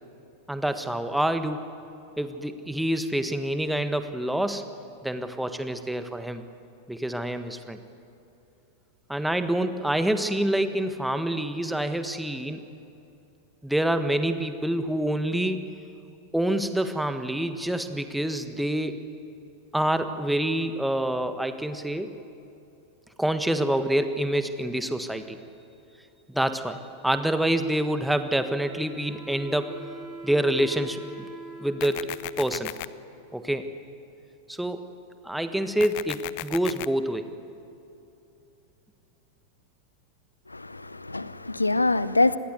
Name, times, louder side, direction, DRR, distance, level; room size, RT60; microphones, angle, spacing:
voice 1, 0.5-1.6 2.2-4.6 5.0-6.4 6.9-7.8 9.1-12.6 13.6-15.6 16.3-19.0 19.7-22.1 23.2-25.4 26.3-29.7 30.2-31.0 31.6-32.1 32.4-32.7 33.3-33.7 34.5-34.8 35.2-37.3, right 1 dB, 5° right, 9 dB, 1.5 m, -27 dB
Wind instrument woodwind instrument, 28.1-33.6, right 3 dB, 20° right, 5.8 m, -44 dB
sound 1, 31.8-32.9 35.8-36.9, left 21 dB, 45° left, 0.7 m, -35 dB
voice 2, 40.5-42.4, left 2 dB, 80° left, 17 dB, 0.7 m, -24 dB
26.5 x 20.5 x 8.1 m, 2.8 s
figure-of-eight pair, 90°, 0 cm